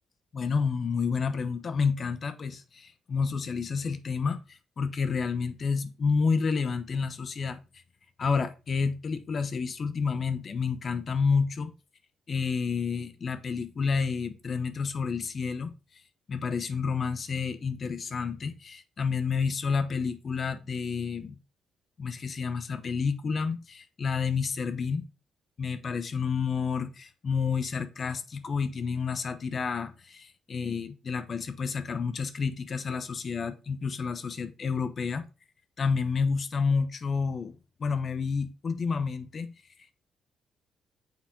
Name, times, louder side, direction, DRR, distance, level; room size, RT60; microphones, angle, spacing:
voice 1, 0.3-7.6 8.2-11.7 12.3-15.7 16.3-21.4 22.0-25.1 25.6-35.2 35.8-39.5, left 5 dB, 50° left, 0.7 m, -30 dB
6.1 x 4.2 x 3.7 m
supercardioid pair, 70°, 0 cm